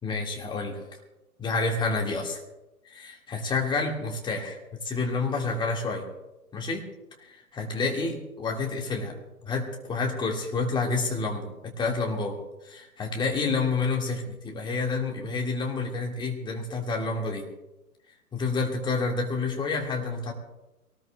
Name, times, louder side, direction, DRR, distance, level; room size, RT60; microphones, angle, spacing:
voice 1, 0.0-0.8 1.4-2.4 2.9-4.6 4.8-6.1 6.5-6.9 7.5-9.2 9.4-12.4 12.6-17.5 18.3-20.3, left 3 dB, 10° left, 1 dB, 1.8 m, -29 dB
23.0 x 18.5 x 2.3 m, 0.97 s
figure-of-eight pair, 130°, 45 cm